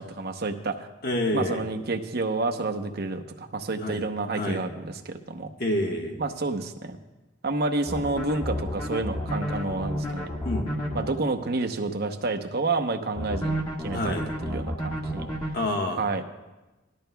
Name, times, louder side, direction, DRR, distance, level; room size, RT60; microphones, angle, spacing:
voice 1, 0.0-0.9 1.3-5.5 6.2-7.0 7.4-10.3 10.9-14.1 14.5-15.3 15.9-16.2, right 3 dB, 55° right, 6 dB, 0.8 m, -29 dB
voice 2, 1.0-1.6 3.8-4.0 4.3-4.6 5.6-6.2 10.4-10.7 13.9-14.3 15.5-16.0, left 1 dB, 50° left, 1 dB, 1.4 m, -28 dB
sound 1, 7.9-11.1 13.2-15.5, equal, 20° left, 1.6 m, -30 dB
18.0 x 12.5 x 2.3 m, 1.1 s
head